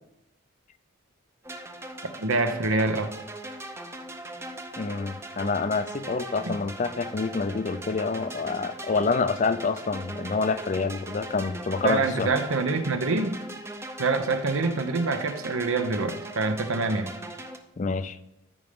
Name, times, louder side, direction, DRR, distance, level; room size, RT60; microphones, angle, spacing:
sound 1, 1.4-17.6, right 1 dB, 10° right, 0.6 m, -40 dB
voice 1, 2.0-3.1 6.4-6.6 11.8-13.3 14.0-17.1, right 3 dB, 80° right, 8 dB, 0.9 m, -26 dB
voice 2, 4.8-12.3 17.8-18.2, left 4 dB, 35° left, 13 dB, 0.4 m, -27 dB
13.5 x 5.0 x 3.6 m, 0.85 s
head